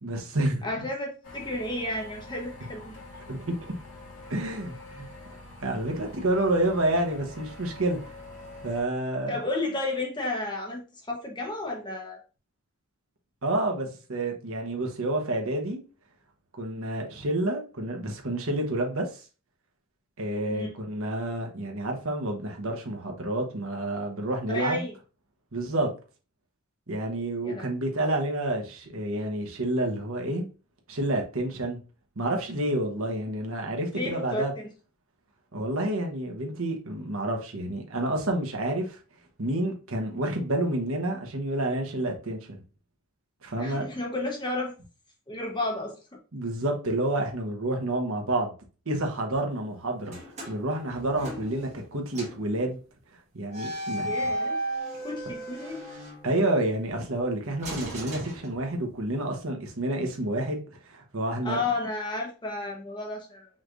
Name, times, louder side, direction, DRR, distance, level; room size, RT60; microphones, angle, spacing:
voice 1, 0.0-0.6 3.3-3.5 4.3-5.1 5.6-8.1 8.6-9.4 13.4-15.8 16.6-19.2 20.2-24.8 25.5-25.9 26.9-30.5 30.9-31.8 32.2-34.5 35.5-39.0 39.4-42.6 43.4-43.8 46.3-48.5 48.9-50.2 50.5-52.8 53.3-54.1 56.2-61.6, right 1 dB, 65° right, 1.1 m, -29 dB
voice 2, 0.6-3.0 9.3-12.2 20.5-20.8 24.5-24.9 27.4-27.7 33.9-34.7 43.6-44.7 45.3-46.0 54.0-54.6 55.0-55.9 61.4-63.5, left 2 dB, 20° left, 1.1 m, -32 dB
sound 1, 1.2-8.8, left 2 dB, 65° left, 1.9 m, -45 dB
sound 2, 50.0-51.9 52.1-52.5 53.5-56.7 57.6-59.0, right 1 dB, 35° right, 1.5 m, -35 dB
5.6 x 3.2 x 2.6 m
head